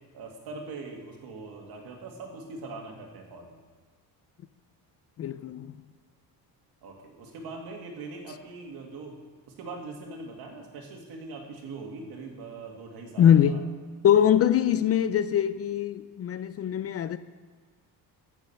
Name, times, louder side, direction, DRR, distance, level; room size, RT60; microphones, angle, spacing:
voice 1, 0.1-3.6 6.8-9.2 9.5-13.6, right 3 dB, 70° right, 2.4 m, -41 dB
voice 2, 5.2-5.7 13.2-13.6 14.0-17.2, left 9 dB, 40° left, 0.5 m, -22 dB
15.0 x 7.0 x 5.7 m
cardioid pair, 150°, 38 cm